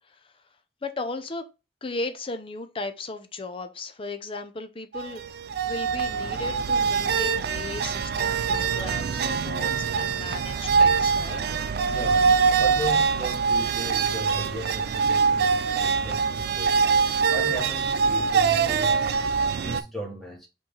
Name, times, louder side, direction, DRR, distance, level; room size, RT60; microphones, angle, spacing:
voice 1, 0.8-1.4 1.8-5.2 5.6-11.5, left 3 dB, 30° left, 0.5 m, -36 dB
sound 1, 4.9-19.8, right 5 dB, 60° right, 0.4 m, -24 dB
voice 2, 11.9-16.9 17.3-20.5, right 1 dB, ahead, 1.4 m, -36 dB
4.3 x 3.1 x 3.7 m
head